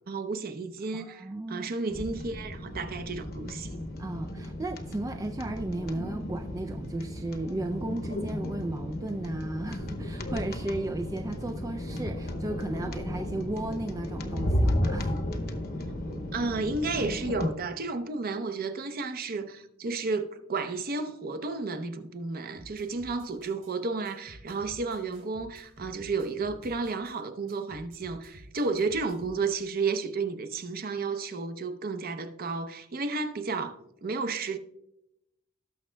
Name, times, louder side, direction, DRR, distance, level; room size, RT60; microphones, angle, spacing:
voice 1, 0.1-3.7 16.3-34.6, right 4 dB, 45° right, 0.7 m, -32 dB
voice 2, 0.9-1.7 4.0-15.2, right 2 dB, 15° right, 0.3 m, -35 dB
sound 1, 1.9-17.5, left 1 dB, 50° left, 0.9 m, -33 dB
sound 2, 22.6-23.7 24.1-27.2 27.5-29.4, right 1 dB, 65° right, 2.7 m, -51 dB
18.5 x 6.1 x 2.2 m
head